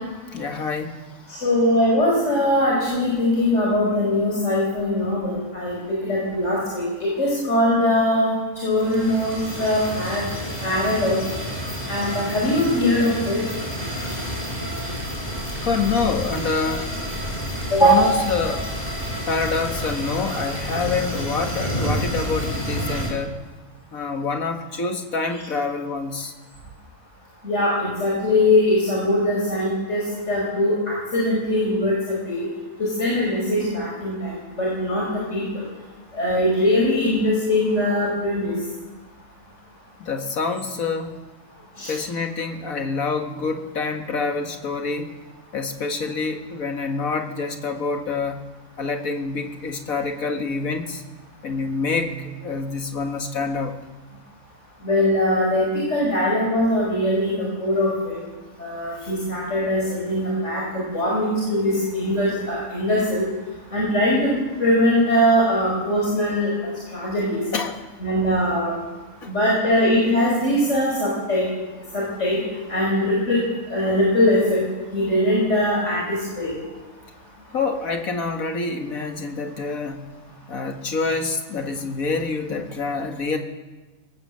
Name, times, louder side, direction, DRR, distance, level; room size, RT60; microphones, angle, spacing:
voice 1, 0.3-1.0 15.6-16.9 17.8-18.7 19.3-23.3 23.9-26.3 40.0-41.2 41.9-45.1 45.5-48.4 48.8-51.0 51.4-52.2 52.4-53.8 67.5-67.8 69.2-69.3 77.5-80.1 80.5-83.4, left 4 dB, 80° left, 4 dB, 2.3 m, -26 dB
voice 2, 1.3-5.8 6.0-8.3 8.6-10.2 10.6-11.1 11.9-13.4 17.7-18.1 27.4-30.7 31.1-32.5 32.8-35.0 35.3-35.4 36.1-38.5 41.8-41.9 54.8-58.2 58.6-60.6 60.9-63.2 63.7-64.3 64.6-66.5 66.9-67.4 68.0-68.7 69.3-71.5 71.9-72.4 72.7-73.4 73.7-74.6 74.9-76.0 76.4-76.5, left 1 dB, 55° left, -5 dB, 5.9 m, -21 dB
sound 1, 8.8-23.1, equal, 30° left, 5.0 m, -29 dB
21.5 x 18.0 x 7.6 m, 1.2 s
omnidirectional pair, 1.4 m